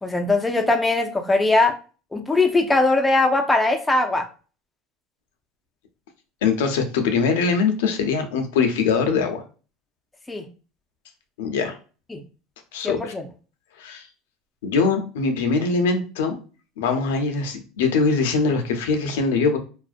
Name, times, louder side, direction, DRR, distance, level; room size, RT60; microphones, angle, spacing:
voice 1, 0.0-1.7 2.1-4.2 10.3-10.4 12.1-12.2 12.8-13.2, left 2 dB, 10° left, 3 dB, 0.4 m, -20 dB
voice 2, 6.4-9.4 11.4-11.8 12.7-13.1 13.8-14.1 14.6-16.4 16.8-19.6, left 4 dB, 85° left, 6 dB, 0.5 m, -22 dB
2.4 x 2.1 x 2.4 m, 0.36 s
supercardioid pair, 120°, 0 cm